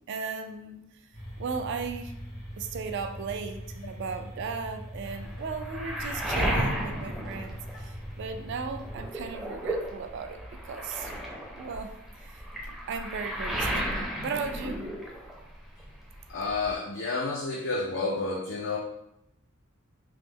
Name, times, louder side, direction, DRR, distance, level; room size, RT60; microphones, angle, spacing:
voice 1, 0.1-0.8 1.4-2.1 2.6-10.4 10.6-11.1 11.6-11.9 12.6-14.8, right 5 dB, 55° right, 7 dB, 0.3 m, -36 dB
sound 1, 1.1-9.1, equal, 80° left, 1.5 m, -41 dB
Waves surf, 5.1-8.3 8.6-15.5 15.8-16.7, equal, ahead, 0.5 m, -34 dB
voice 2, 16.3-18.8, left 3 dB, 60° left, -1 dB, 0.4 m, -30 dB
3.0 x 2.0 x 3.5 m, 0.80 s
head